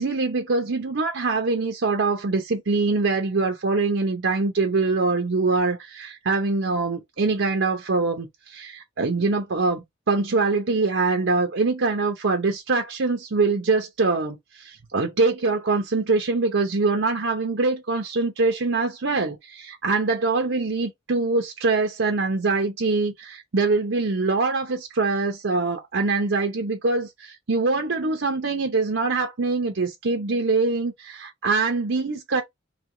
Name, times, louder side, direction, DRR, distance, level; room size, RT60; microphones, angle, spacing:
voice 1, 0.0-32.4, right 3 dB, 85° right, 0.7 m, -24 dB
3.4 x 2.8 x 3.7 m
head